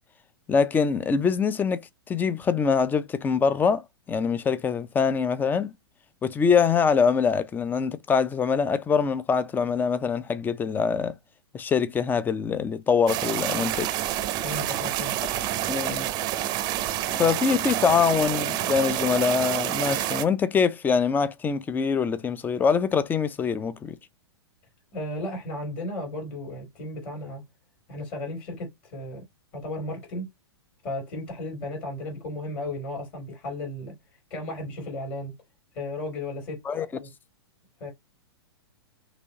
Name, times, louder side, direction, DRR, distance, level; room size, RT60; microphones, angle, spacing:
voice 1, 0.5-5.7 6.2-11.1 11.5-13.9 15.7-16.1 17.1-24.0 36.7-36.9, left 6 dB, 15° left, 0.5 m, -24 dB
sound 1, 13.1-20.3, right 13 dB, 30° right, 0.6 m, -28 dB
voice 2, 14.4-15.1 24.9-27.4 27.9-29.2 29.5-30.3 30.8-33.9 34.3-35.3 35.7-37.1 37.8-37.9, left 1 dB, 40° left, 3.3 m, -34 dB
6.1 x 3.1 x 2.8 m
figure-of-eight pair, 105°, 13 cm